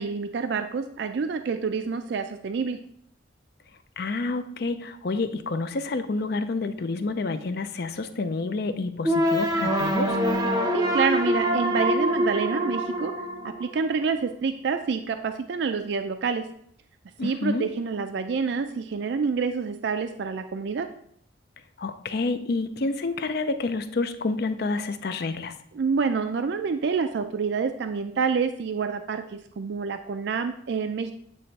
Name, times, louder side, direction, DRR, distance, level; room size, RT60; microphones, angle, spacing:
voice 1, 0.0-2.8 10.7-13.1 13.4-16.4 17.2-20.9 25.7-31.1, right 5 dB, 60° right, 8 dB, 0.4 m, -27 dB
voice 2, 4.0-10.2 17.2-17.7 21.8-25.5, left 3 dB, 55° left, 10 dB, 0.5 m, -29 dB
sound 1, 9.0-14.1, equal, 20° right, 0.7 m, -25 dB
8.5 x 3.3 x 4.0 m, 0.67 s
head